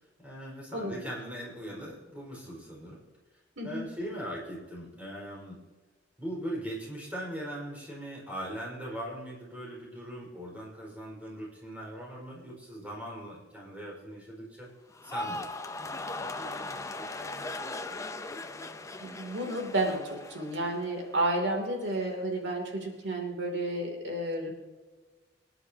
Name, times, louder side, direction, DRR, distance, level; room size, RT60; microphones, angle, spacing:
voice 1, 0.2-3.0 3.6-5.6 6.2-14.7 15.0-18.0, equal, 10° right, -4 dB, 5.2 m, -40 dB
sound 1, 14.9-21.2 21.5-22.0, left 2 dB, 15° left, 0.7 m, -39 dB
voice 2, 19.0-24.5, right 1 dB, 75° right, 1 dB, 3.0 m, -31 dB
25.0 x 11.0 x 2.9 m, 1.3 s
head